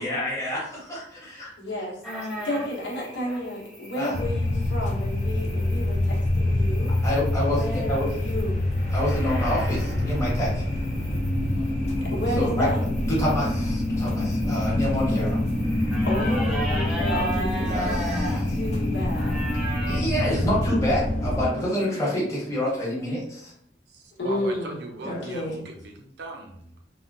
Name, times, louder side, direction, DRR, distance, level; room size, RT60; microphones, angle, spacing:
voice 1, 0.0-1.5 4.0-4.1 7.0-8.1 8.9-10.8 12.4-15.4 17.6-18.3 19.9-23.5 25.0-25.2, equal, 15° left, -6 dB, 1.1 m, -28 dB
voice 2, 1.6-2.0 2.4-6.9 7.5-8.6 12.1-12.8 15.0-15.3 16.0-18.0 18.5-19.4 21.6-22.1 24.2-24.8 25.1-25.6, left 1 dB, 80° left, -4 dB, 1.1 m, -32 dB
sound 1, 2.0-20.0, right 1 dB, ahead, 0.7 m, -38 dB
sound 2, 4.1-21.4, left 1 dB, 35° left, 0.5 m, -27 dB
sound 3, 8.6-22.6, left 1 dB, 60° left, 1.0 m, -31 dB
voice 3, 23.9-26.8, right 2 dB, 65° right, 4 dB, 0.5 m, -39 dB
3.5 x 2.1 x 2.6 m, 0.69 s
head